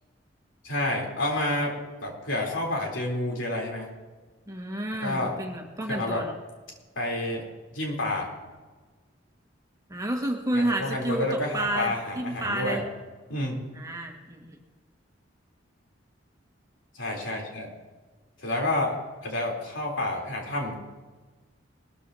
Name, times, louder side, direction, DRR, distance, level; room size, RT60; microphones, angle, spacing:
voice 1, 0.6-3.9 5.0-5.4 5.9-6.2 7.0-7.4 7.7-8.3 10.5-12.8 13.3-13.6 17.0-17.7 18.4-19.0 19.2-20.7, left 1 dB, 85° left, -1 dB, 3.5 m, -29 dB
voice 2, 4.5-6.3 9.9-12.8 13.7-14.6, right 1 dB, 20° right, 1 dB, 1.7 m, -30 dB
20.5 x 13.5 x 2.8 m, 1.3 s
head